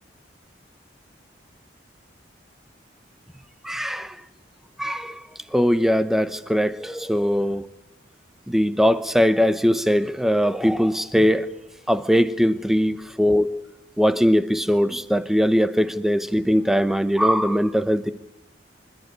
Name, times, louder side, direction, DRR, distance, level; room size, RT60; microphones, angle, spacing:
voice 1, 3.6-4.2 4.8-5.2 5.5-7.6 8.5-11.5 11.9-13.5 14.0-18.1, equal, ahead, 0.8 m, -20 dB
26.0 x 13.5 x 9.5 m
head